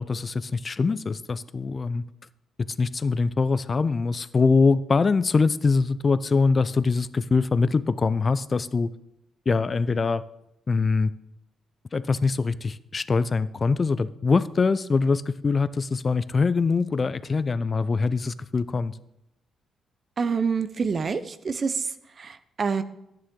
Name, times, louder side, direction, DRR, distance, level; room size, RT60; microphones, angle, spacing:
voice 1, 0.0-2.0 2.8-8.9 9.5-10.2 10.7-11.1 11.9-18.9, left 4 dB, 40° left, 17 dB, 0.5 m, -23 dB
voice 2, 20.2-22.8, right 5 dB, 45° right, 12 dB, 0.7 m, -27 dB
11.0 x 9.0 x 3.7 m, 0.84 s
supercardioid pair, 60°, 0 cm